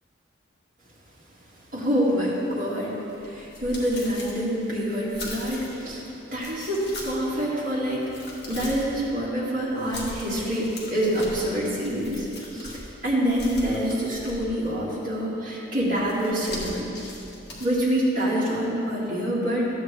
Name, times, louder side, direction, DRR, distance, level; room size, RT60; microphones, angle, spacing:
voice 1, 1.7-6.0 6.3-8.1 8.5-12.7 13.0-16.9 17.6-19.7, equal, 45° right, -8 dB, 2.0 m, -26 dB
sound 1, 3.1-5.9 6.4-7.4 7.8-9.0 9.8-12.9 13.3-14.7 16.1-17.7, left 1 dB, 55° left, 1.7 m, -40 dB
12.5 x 8.0 x 3.3 m, 2.9 s
head